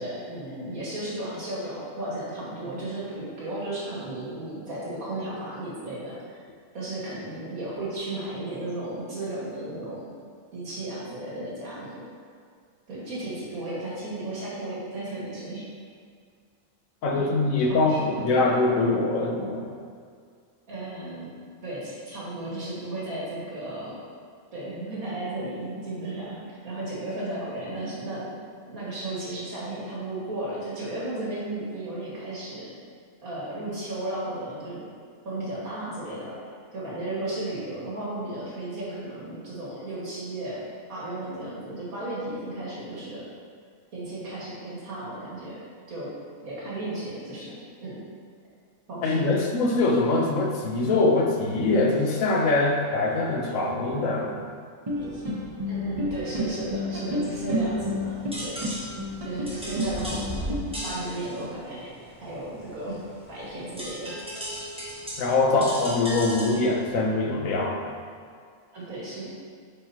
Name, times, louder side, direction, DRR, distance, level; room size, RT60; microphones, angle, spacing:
voice 1, 0.0-6.4 6.7-10.1 10.5-12.1 12.9-15.7 17.1-18.5 20.7-21.3 21.6-24.0 24.5-32.7 33.2-34.9 35.2-36.3 36.7-40.6 40.9-43.3 43.9-45.6 45.9-46.1 46.4-48.0 48.9-49.3 55.7-58.6 59.2-61.9 62.2-63.0 63.3-64.2 65.6-65.7 68.7-69.3, right 1 dB, 85° right, -8 dB, 2.5 m, -34 dB
voice 2, 17.0-19.7 49.0-54.5 65.2-67.9, left 2 dB, 75° left, 0 dB, 1.3 m, -23 dB
sound 1, 54.9-60.6, left 1 dB, 30° right, 0.8 m, -30 dB
sound 2, 57.7-67.0, equal, 5° right, 1.3 m, -39 dB
9.1 x 5.3 x 2.9 m, 2.1 s
omnidirectional pair, 1.4 m